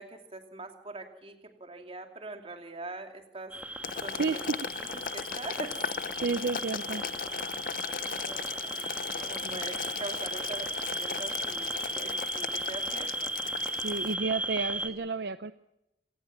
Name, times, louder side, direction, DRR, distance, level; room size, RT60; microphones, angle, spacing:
voice 1, 0.0-3.5 4.0-4.4 4.8-4.9 5.1-6.0 7.9-13.3, right 2 dB, 35° right, 5 dB, 2.8 m, -43 dB
sound 1, 3.5-14.9, right 1 dB, 10° right, 1.7 m, -36 dB
Boiling, 3.8-14.1, left 7 dB, 50° left, 0.7 m, -37 dB
voice 2, 4.1-4.6 6.2-7.0 9.4-9.6 13.7-15.5, right 4 dB, 65° right, 12 dB, 0.7 m, -31 dB
26.5 x 18.5 x 6.0 m, 0.88 s
head